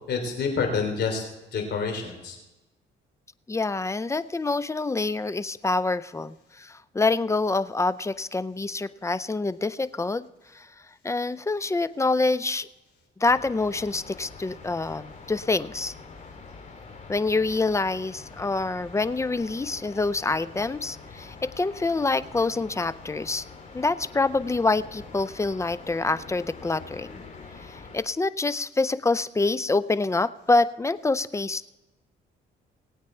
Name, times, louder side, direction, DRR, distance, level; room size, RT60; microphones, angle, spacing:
voice 1, 0.1-1.2 1.5-2.4, left 5 dB, 60° left, 3 dB, 3.4 m, -27 dB
voice 2, 3.5-10.3 10.5-10.7 11.0-12.7 13.2-15.9 17.1-23.4 23.7-27.1 27.7-31.7, left 3 dB, 15° left, 16 dB, 0.4 m, -26 dB
sound 1, 13.3-28.0, left 4 dB, 40° left, 2.8 m, -45 dB
20.0 x 8.8 x 4.4 m, 1.1 s
cardioid pair, 90°, 20 cm